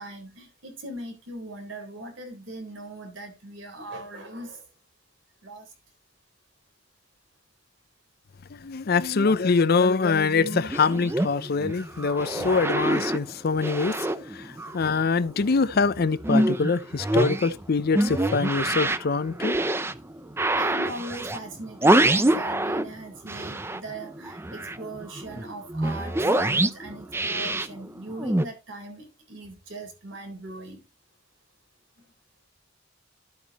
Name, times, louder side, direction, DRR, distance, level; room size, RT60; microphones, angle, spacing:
voice 1, 0.0-4.7 5.4-5.7 20.5-30.8, right 2 dB, 65° right, 3.8 m, -40 dB
voice 2, 8.5-19.6, left 4 dB, 50° left, 0.5 m, -24 dB
sound 1, 10.4-15.1 15.4-22.9 23.2-28.4, right 1 dB, 10° right, 0.5 m, -26 dB
12.0 x 8.2 x 3.0 m
head